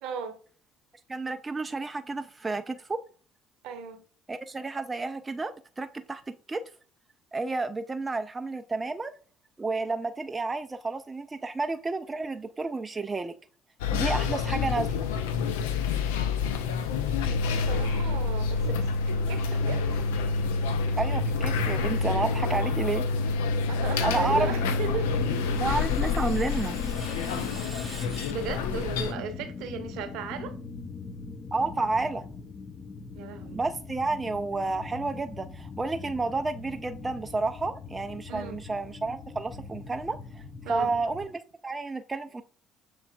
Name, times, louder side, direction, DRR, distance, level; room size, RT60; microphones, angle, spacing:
voice 1, 0.0-0.4 3.6-4.0 17.7-20.0 23.7-25.2 28.3-30.5 33.1-33.6 38.3-38.6 40.6-40.9, right 5 dB, 65° right, 0.7 m, -36 dB
voice 2, 1.1-3.0 4.3-6.2 6.5-6.6 7.3-9.1 9.6-13.3 13.9-15.1 21.0-23.1 24.0-24.5 25.6-26.8 31.5-32.3 33.5-42.4, right 3 dB, 25° right, 0.3 m, -31 dB
sound 1, 13.8-29.1, left 4 dB, 75° left, 0.4 m, -28 dB
sound 2, 24.0-41.3, left 4 dB, 30° left, 0.7 m, -40 dB
Screech, 24.8-29.1, right 1 dB, 5° right, 1.1 m, -47 dB
6.8 x 3.1 x 2.3 m
hypercardioid pair, 55°, 0 cm